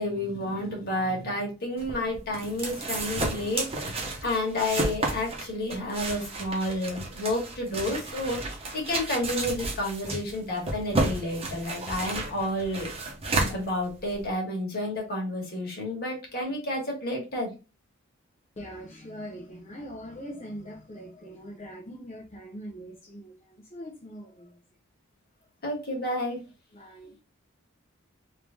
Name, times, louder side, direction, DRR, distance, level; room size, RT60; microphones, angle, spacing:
voice 1, 0.0-12.9 13.5-17.5 25.6-26.4, left 1 dB, 50° left, 1.4 m, -30 dB
sound 1, 1.8-14.3, right 2 dB, 30° right, 0.9 m, -32 dB
voice 2, 18.6-24.6 26.7-27.2, equal, 30° left, 0.6 m, -42 dB
3.2 x 2.7 x 3.3 m
head